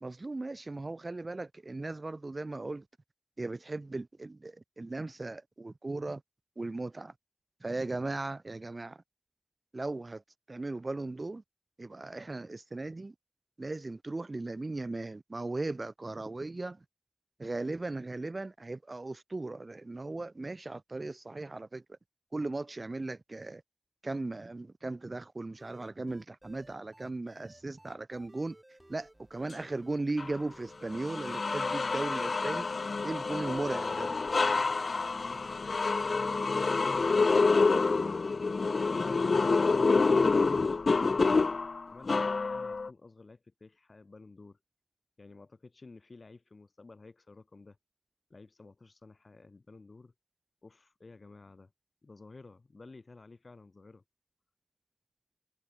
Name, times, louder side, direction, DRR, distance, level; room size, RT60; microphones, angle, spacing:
voice 1, 0.0-2.8 3.4-6.2 6.6-7.1 7.6-9.0 9.7-10.2 10.5-11.4 11.8-13.1 13.6-16.8 17.4-22.0 22.3-23.6 24.0-28.6 28.9-32.7 33.0-34.1, right 2 dB, 50° right, 0.8 m, -37 dB
sound 1, 25.6-32.7, right 1 dB, 20° right, 3.7 m, -58 dB
sound 2, 30.2-30.3 30.9-42.9, left 4 dB, 90° left, 0.6 m, -27 dB
voice 2, 35.2-35.5 35.9-36.4 41.9-44.6 45.2-47.8 48.3-50.1 50.6-51.7 52.0-54.0, left 3 dB, 65° left, 3.6 m, -53 dB
wide cardioid pair, 70°, 0 cm